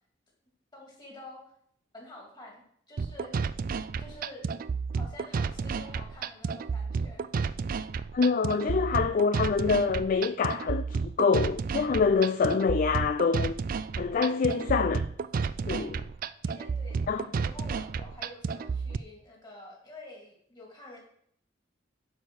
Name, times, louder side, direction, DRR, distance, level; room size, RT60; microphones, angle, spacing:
voice 1, 0.7-1.4 1.9-3.3 4.0-4.5 4.9-7.2 7.8-7.9 16.4-21.0, left 1 dB, 25° left, 2.9 m, -48 dB
sound 1, 3.0-19.0, right 5 dB, 45° right, 0.3 m, -32 dB
voice 2, 8.1-13.5 14.0-15.1 15.7-16.0 17.1-17.2, left 5 dB, 45° left, 0.3 m, -26 dB
9.1 x 4.9 x 6.4 m
head